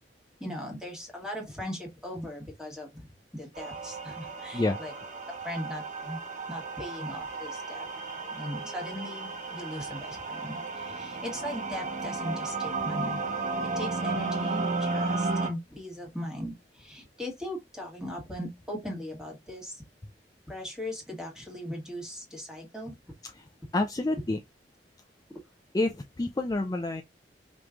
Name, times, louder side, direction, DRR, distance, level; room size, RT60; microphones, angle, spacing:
voice 1, 0.4-4.9 5.4-6.2 6.5-7.9 8.3-13.2 13.6-19.8 20.5-23.0 23.7-24.2, left 1 dB, 5° right, 1.6 m, -39 dB
sound 1, 3.6-15.5, right 3 dB, 45° right, 1.1 m, -33 dB
voice 2, 23.7-24.4 25.7-27.0, left 2 dB, 20° left, 0.4 m, -28 dB
5.2 x 3.1 x 2.4 m
head